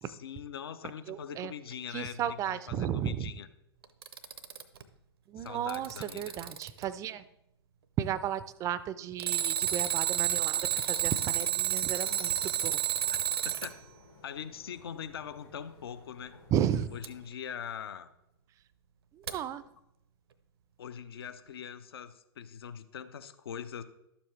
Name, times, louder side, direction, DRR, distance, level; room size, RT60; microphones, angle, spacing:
voice 1, 0.0-3.5 5.4-6.4 13.1-13.8 14.2-16.4 16.9-18.1 20.8-23.8, left 8 dB, 65° left, 12 dB, 0.6 m, -42 dB
voice 2, 1.1-1.5 1.9-3.3 5.3-7.2 8.0-12.8 16.5-16.9 19.1-19.6, right 10 dB, 25° right, 15 dB, 0.4 m, -34 dB
Alarm, 3.8-4.8 5.5-6.8 9.2-13.7 17.0-17.1 19.3-19.4, right 10 dB, 65° right, 0.7 m, -30 dB
sound 1, 10.8-17.2, left 3 dB, 85° left, 3.3 m, -56 dB
11.5 x 7.0 x 3.2 m, 0.84 s
figure-of-eight pair, 100°, 14 cm